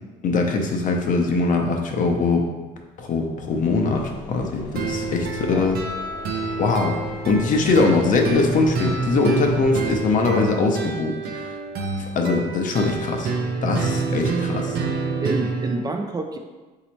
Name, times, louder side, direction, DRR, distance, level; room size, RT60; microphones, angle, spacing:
voice 1, 0.2-2.4 3.0-5.8 6.6-7.0 7.3-11.4 12.0-13.3 13.6-14.8, left 3 dB, 50° left, 3 dB, 0.7 m, -22 dB
sound 1, 3.5-10.1, left 2 dB, 85° left, 0.7 m, -40 dB
sound 2, 4.8-15.8, right 4 dB, 65° right, 0.6 m, -27 dB
voice 2, 15.2-16.4, right 3 dB, 25° right, 4 dB, 0.4 m, -29 dB
4.0 x 2.8 x 4.4 m, 1.2 s
cardioid pair, 110°, 17 cm